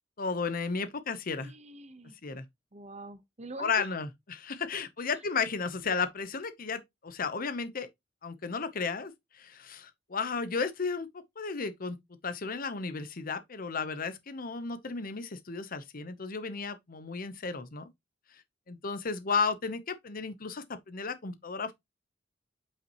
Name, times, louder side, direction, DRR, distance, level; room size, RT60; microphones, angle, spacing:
voice 1, 0.2-1.5 2.2-2.4 3.6-7.9 8.2-11.1 11.4-12.0 12.2-17.9 18.7-21.7, left 5 dB, 50° left, 0.8 m, -34 dB
voice 2, 1.4-2.2 2.7-3.9 5.0-5.2, right 2 dB, 35° right, 0.9 m, -45 dB
8.4 x 5.4 x 2.9 m
head